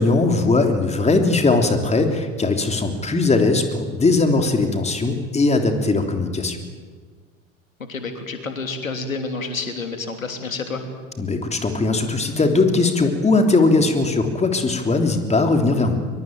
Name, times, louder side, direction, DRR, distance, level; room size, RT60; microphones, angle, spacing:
voice 1, 0.0-6.6 11.2-15.9, left 3 dB, 15° left, 5 dB, 3.4 m, -19 dB
voice 2, 7.9-10.8, left 3 dB, 80° left, 6 dB, 3.1 m, -29 dB
23.5 x 22.5 x 9.1 m, 1.5 s
figure-of-eight pair, 75°, 40 cm